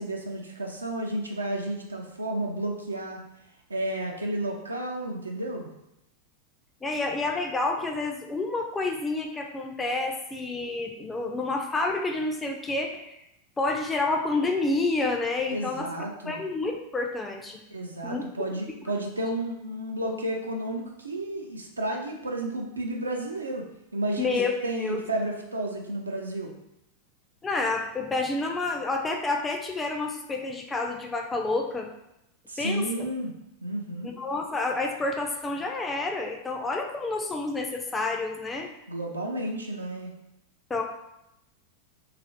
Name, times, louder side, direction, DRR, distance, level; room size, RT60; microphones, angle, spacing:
voice 1, 0.0-3.2 3.7-5.7 15.5-16.4 17.7-23.7 23.9-26.5 32.5-33.3 33.6-34.1 38.9-40.1, right 1 dB, 80° right, 1 dB, 0.4 m, -32 dB
voice 2, 6.8-13.2 13.6-15.9 16.3-17.6 18.0-18.2 24.2-24.5 24.8-25.0 27.4-31.9 32.6-33.1 34.0-38.7 40.7-40.8, left 3 dB, 15° left, 2 dB, 0.3 m, -29 dB
2.4 x 2.0 x 2.6 m, 0.83 s
figure-of-eight pair, 90°, 0 cm